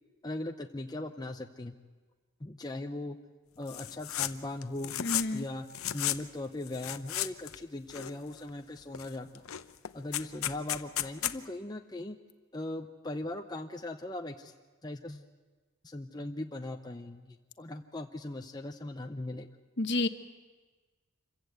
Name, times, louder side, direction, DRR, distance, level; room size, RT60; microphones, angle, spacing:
voice 1, 0.2-1.8 2.4-3.2 3.6-4.9 5.3-5.7 5.9-9.5 9.9-12.2 12.5-14.5 14.8-15.3 15.8-19.5, left 1 dB, 20° left, 4 dB, 0.7 m, -39 dB
sound 1, 3.7-4.3 4.6-5.4 5.7-6.2 6.7-7.6 7.9-8.5 8.9-9.1 9.3-11.4, left 12 dB, 85° left, 0.7 m, -34 dB
voice 2, 5.0-5.5 19.8-20.1, left 2 dB, 55° left, 8 dB, 1.1 m, -29 dB
26.5 x 15.5 x 8.0 m, 1.4 s
head